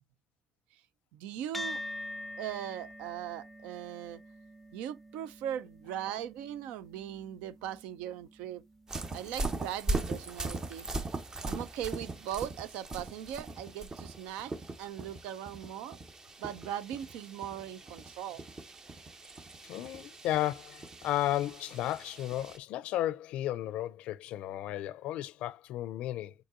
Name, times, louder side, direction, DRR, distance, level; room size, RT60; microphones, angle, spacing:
voice 1, 1.1-1.8 2.4-4.2 4.7-8.6 9.1-10.9 11.4-14.5 14.8-16.0 16.4-18.4, right 10 dB, 85° right, 0.4 m, -39 dB
sound 1, 1.5-10.2, left 1 dB, ahead, 0.5 m, -46 dB
sound 2, 8.9-22.6, right 2 dB, 30° right, 0.8 m, -40 dB
voice 2, 19.7-26.3, left 14 dB, 75° left, 0.3 m, -34 dB
5.1 x 4.0 x 2.4 m
supercardioid pair, 65°, 2 cm